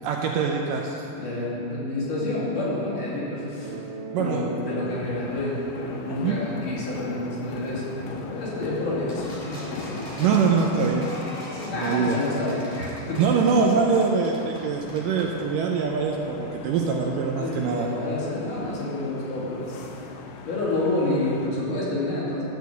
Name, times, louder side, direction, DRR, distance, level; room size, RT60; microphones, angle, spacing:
voice 1, 0.0-1.1 4.1-4.5 6.1-6.4 10.2-11.1 11.4-12.2 13.2-17.9, right 5 dB, 80° right, 1 dB, 2.1 m, -24 dB
voice 2, 1.1-3.8 4.1-10.2 11.5-13.2 17.4-19.8 20.5-22.4, left 2 dB, 60° left, -8 dB, 3.8 m, -29 dB
Bass guitar, 3.6-7.6, right 3 dB, 60° right, 1.0 m, -42 dB
sound 1, 4.7-21.5, left 5 dB, 75° left, 2.3 m, -40 dB
sound 2, 9.1-15.3, left 1 dB, 40° left, 0.7 m, -41 dB
12.5 x 4.7 x 8.1 m, 2.9 s
omnidirectional pair, 4.3 m